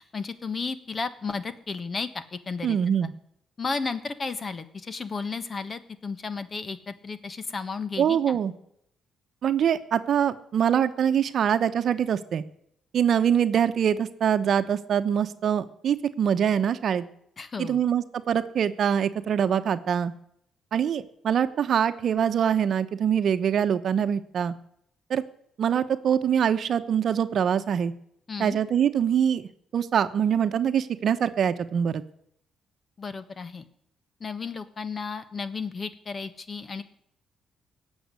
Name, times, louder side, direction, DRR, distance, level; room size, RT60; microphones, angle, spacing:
voice 1, 0.0-3.1 3.6-8.4 17.4-17.8 28.3-28.6 33.0-33.6 34.2-36.8, left 4 dB, 35° left, 13 dB, 1.3 m, -33 dB
voice 2, 2.6-3.1 8.0-8.5 9.4-12.4 12.9-17.0 17.6-20.1 20.7-24.5 25.1-25.2 25.6-27.9 28.4-32.0, right 8 dB, 60° right, 11 dB, 1.0 m, -24 dB
18.0 x 7.3 x 9.6 m, 0.73 s
cardioid pair, 90°, 0 cm